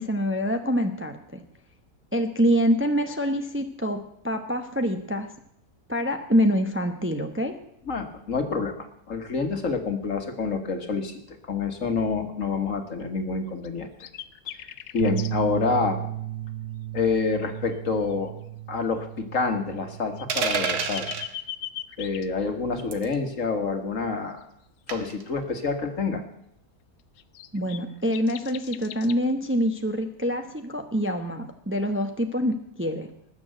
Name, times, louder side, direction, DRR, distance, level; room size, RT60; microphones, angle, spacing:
voice 1, 0.0-1.4 2.1-4.0 4.2-5.3 5.9-7.5 27.5-33.1, equal, 10° right, 6 dB, 0.8 m, -25 dB
voice 2, 7.9-14.1 14.5-16.0 16.9-18.3 18.7-21.1 22.0-24.4 24.9-26.2, left 4 dB, 55° left, 6 dB, 1.9 m, -28 dB
sound 1, 13.6-13.7 14.0-15.3 17.5-17.7 18.1-18.2 19.9-22.3 27.2-29.1, left 12 dB, 85° left, 1.2 m, -39 dB
sound 2, 15.0-21.3, right 13 dB, 55° right, 0.8 m, -35 dB
sound 3, 20.3-21.3 22.9-23.1 24.9-25.2, right 6 dB, 90° right, 1.8 m, -28 dB
19.5 x 7.0 x 7.8 m, 0.74 s
omnidirectional pair, 1.6 m